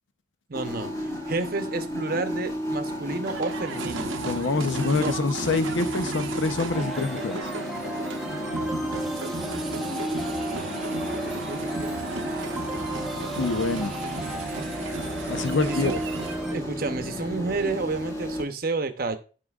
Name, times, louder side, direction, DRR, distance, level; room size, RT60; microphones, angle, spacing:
sound 1, 0.5-18.4, equal, 15° left, 1.2 m, -33 dB
voice 1, 0.5-4.1 4.9-5.1 8.3-9.0 10.9-12.9 15.7-16.0 16.5-19.2, right 3 dB, 45° right, 0.7 m, -31 dB
sound 2, 3.2-16.4, right 4 dB, 80° right, 0.7 m, -36 dB
voice 2, 4.2-7.5 13.4-14.0 15.3-16.0, left 3 dB, 75° left, 0.7 m, -26 dB
sound 3, 6.7-16.5, right 2 dB, ahead, 0.6 m, -36 dB
14.5 x 5.1 x 2.4 m
head